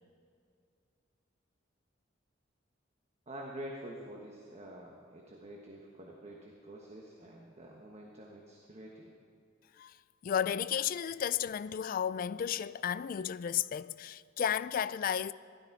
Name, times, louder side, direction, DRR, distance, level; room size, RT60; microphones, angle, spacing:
voice 1, 3.3-9.1, right 1 dB, 35° right, 1.2 m, -47 dB
voice 2, 10.2-15.3, left 9 dB, 45° left, 0.3 m, -33 dB
16.5 x 13.0 x 4.7 m
head